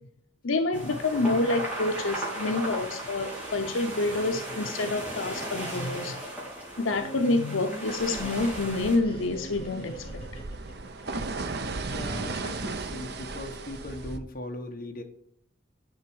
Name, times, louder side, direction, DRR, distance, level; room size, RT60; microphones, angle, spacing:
voice 1, 0.4-6.2 6.8-10.2, left 2 dB, 80° left, 0.7 m, -28 dB
sound 1, 0.7-9.0, right 1 dB, 10° right, 3.3 m, -36 dB
Laughter, 6.8-11.8, equal, 25° left, 1.7 m, -43 dB
sound 2, 7.9-14.2, right 3 dB, 55° right, 0.7 m, -36 dB
voice 2, 11.9-15.0, left 1 dB, 45° left, 1.2 m, -39 dB
11.0 x 6.0 x 4.7 m
head